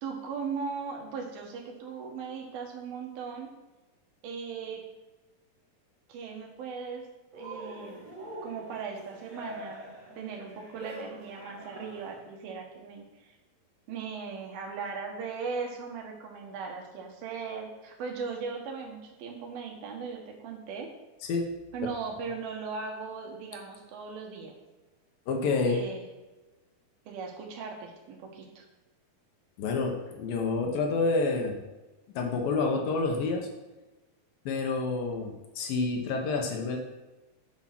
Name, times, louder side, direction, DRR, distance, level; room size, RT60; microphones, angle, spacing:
voice 1, 0.0-3.5 4.2-4.8 6.1-7.1 7.3-8.0 8.4-9.9 10.2-13.3 13.9-20.9 21.7-24.6 25.7-26.0 27.1-28.6, right 5 dB, 80° right, 1 dB, 3.3 m, -38 dB
Cheering, 7.3-12.3, right 1 dB, 40° right, 1.1 m, -44 dB
voice 2, 21.2-21.5 25.3-25.8 29.6-31.6 32.2-33.5 34.5-36.8, left 3 dB, 75° left, 2 dB, 2.8 m, -28 dB
10.0 x 5.0 x 6.0 m, 1.1 s
omnidirectional pair, 4.2 m